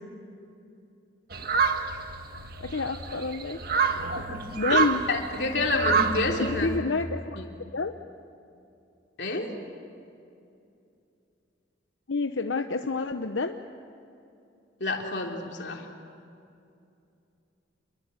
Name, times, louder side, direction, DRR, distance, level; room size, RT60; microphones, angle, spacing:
sound 1, 1.3-6.8, right 5 dB, 50° right, 1.6 m, -28 dB
voice 1, 2.6-4.0 4.5-5.0 6.4-7.9 12.1-13.6, left 3 dB, 90° left, 6 dB, 0.9 m, -29 dB
voice 2, 5.1-6.7 7.4-7.5 9.2-9.5 14.8-15.9, left 2 dB, 65° left, 1 dB, 3.3 m, -29 dB
28.5 x 22.5 x 8.3 m, 2.6 s
head